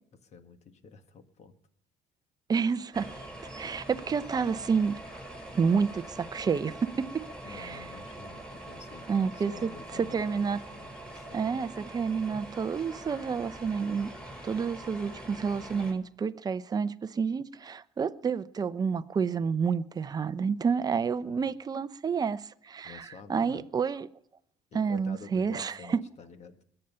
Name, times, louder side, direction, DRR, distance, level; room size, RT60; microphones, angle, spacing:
voice 1, 0.2-1.6 7.4-11.6 21.0-21.5 22.8-23.6 24.7-26.6, left 5 dB, 40° left, 1.8 m, -49 dB
voice 2, 2.5-3.1 3.6-5.0 5.5-7.2 7.5-7.8 9.1-10.6 11.3-14.1 14.4-23.0 23.3-24.1 24.7-26.0, right 6 dB, 25° right, 0.7 m, -29 dB
sound 1, 2.9-15.9, right 1 dB, 5° left, 5.4 m, -44 dB
21.5 x 8.9 x 5.6 m
cardioid pair, 135°, 17 cm